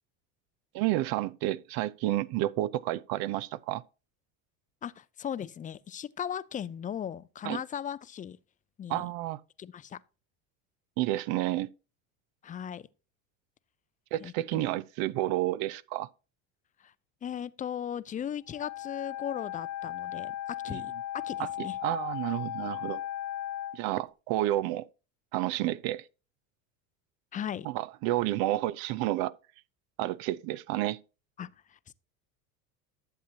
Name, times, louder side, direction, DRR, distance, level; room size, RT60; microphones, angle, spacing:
voice 1, 0.7-3.8 7.4-7.6 8.9-9.4 11.0-11.7 14.1-16.1 20.7-20.8 21.4-23.0 23.7-24.9 25.3-26.1 27.7-29.3 30.0-31.0, right 15 dB, 60° right, 0.6 m, -30 dB
voice 2, 4.8-8.4 8.8-9.1 9.6-10.0 12.4-12.9 14.2-14.6 16.8-16.9 17.2-21.8 27.3-27.7 31.4-31.9, left 9 dB, 20° left, 0.4 m, -38 dB
Wind instrument woodwind instrument, 18.5-23.8, left 12 dB, 55° left, 1.0 m, -37 dB
11.5 x 7.5 x 2.8 m
supercardioid pair, 95°, 41 cm